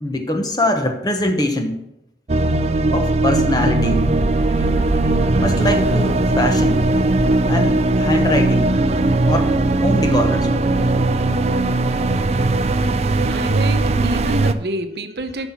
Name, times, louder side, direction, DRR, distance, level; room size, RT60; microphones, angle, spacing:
voice 1, 0.0-1.7 2.9-4.0 4.5-4.7 4.9-6.8 7.3-8.7 9.3-9.5 9.8-10.6, left 1 dB, 20° left, 5 dB, 1.0 m, -23 dB
sound 1, 2.3-14.5, right 2 dB, 35° right, 0.4 m, -18 dB
sound 2, 3.8-11.2, equal, 75° left, 1.8 m, -29 dB
voice 2, 13.3-15.5, right 1 dB, 65° right, 7 dB, 0.9 m, -27 dB
7.8 x 6.2 x 7.3 m, 0.87 s
head